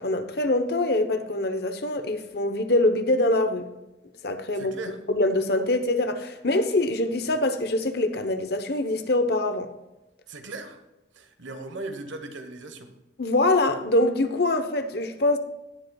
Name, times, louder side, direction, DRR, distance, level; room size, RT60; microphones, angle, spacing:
voice 1, 0.0-3.7 4.2-4.7 5.1-9.7 13.2-15.4, left 2 dB, 55° left, 0.9 m, -24 dB
voice 2, 4.5-5.0 10.3-10.8 11.1-12.9, right 2 dB, 80° right, 1.2 m, -38 dB
18.0 x 8.0 x 2.3 m
head